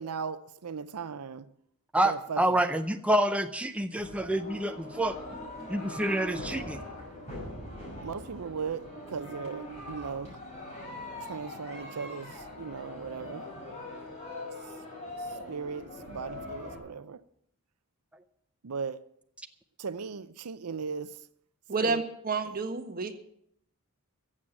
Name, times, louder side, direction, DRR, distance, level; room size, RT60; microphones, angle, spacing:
voice 1, 0.0-1.5 2.0-2.6 8.0-10.4 11.2-13.5 15.2-17.2 18.6-19.0 19.8-21.2 21.8-22.0, right 5 dB, 90° right, 0.6 m, -37 dB
voice 2, 1.9-5.1 5.7-6.8, right 1 dB, 5° right, 0.6 m, -27 dB
sound 1, 4.0-16.8, left 1 dB, 30° left, 5.8 m, -42 dB
voice 3, 21.7-23.1, right 4 dB, 40° right, 1.5 m, -30 dB
15.0 x 7.5 x 8.8 m
head